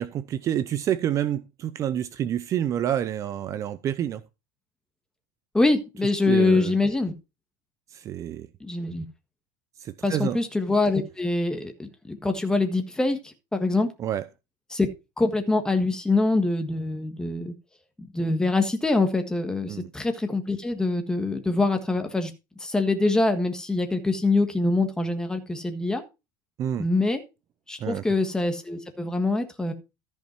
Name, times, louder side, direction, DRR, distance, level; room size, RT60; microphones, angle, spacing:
voice 1, 0.0-4.2 6.3-6.7 7.9-8.5 9.8-10.4 14.0-14.2 19.7-19.9 26.6-26.9 27.8-28.0, right 10 dB, 35° right, 0.5 m, -28 dB
voice 2, 5.5-7.1 8.6-9.0 10.0-13.9 14.7-14.9 15.2-17.5 18.1-22.3 22.6-26.0 26.8-27.2 27.7-29.7, left 2 dB, 5° left, 1.5 m, -24 dB
14.0 x 5.4 x 4.5 m
supercardioid pair, 135°, 10 cm